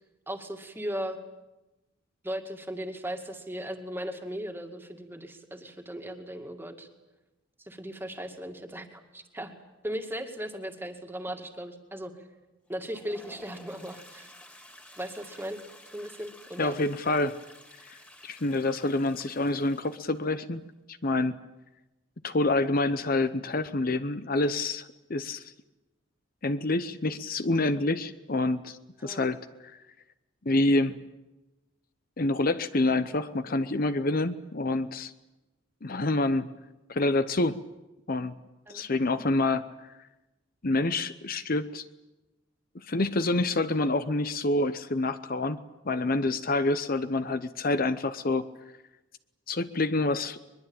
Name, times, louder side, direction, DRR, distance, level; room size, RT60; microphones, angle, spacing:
voice 1, 0.3-1.2 2.2-6.9 7.6-9.5 9.8-12.1 12.7-14.3 15.0-15.6 15.9-16.8 29.0-29.2 38.7-38.9, equal, 10° right, 5 dB, 2.1 m, -37 dB
Toilet flush, 12.7-20.3, left 1 dB, 10° left, 2.7 m, -52 dB
voice 2, 16.6-17.4 17.9-18.0 18.2-20.6 21.0-21.3 22.2-25.4 26.4-29.4 30.4-31.0 32.2-35.1 35.8-36.5 36.9-37.6 38.1-38.3 38.7-39.9 40.6-41.9 42.7-45.6 45.8-48.4 49.5-50.4, left 2 dB, 45° left, 12 dB, 0.8 m, -27 dB
22.5 x 22.0 x 8.9 m, 1.0 s
head